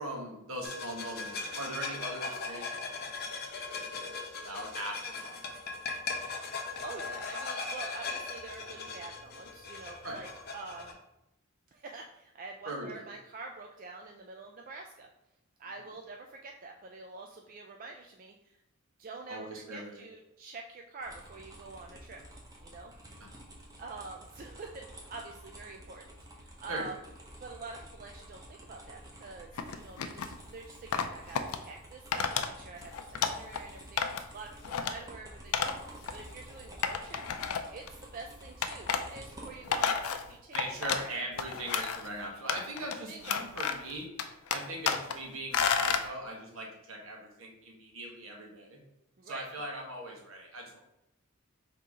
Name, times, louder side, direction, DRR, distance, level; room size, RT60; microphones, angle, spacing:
voice 1, 0.0-3.5 3.8-5.3 10.0-10.2 12.6-13.0 19.3-20.0 26.7-26.8 40.5-44.1 44.5-48.8 49.2-50.8, right 1 dB, 75° right, 0 dB, 1.1 m, -40 dB
sound 1, 0.6-10.9, left 4 dB, 45° left, 0.7 m, -39 dB
voice 2, 6.8-11.0 11.7-15.1 15.6-18.6 19.0-22.2 22.6-22.9 23.8-27.0 27.4-34.5 34.8-37.2 37.7-40.6 40.8-41.2 43.1-43.4 49.2-49.7, right 3 dB, 40° right, 2 dB, 0.3 m, -46 dB
sound 2, 21.0-39.8, right 1 dB, 15° right, 0.7 m, -51 dB
sound 3, 29.6-30.3 30.9-31.6 32.1-32.5 32.8-33.6 34.0-34.3 34.6-34.9 35.5-35.8 36.1-36.2 36.8-37.9 38.6-39.0 39.5-41.1 41.4-42.1 42.5-43.0 43.2-43.9 44.2-45.2 45.5-46.1, left 7 dB, 85° left, 0.4 m, -31 dB
3.8 x 2.8 x 4.7 m, 0.89 s
head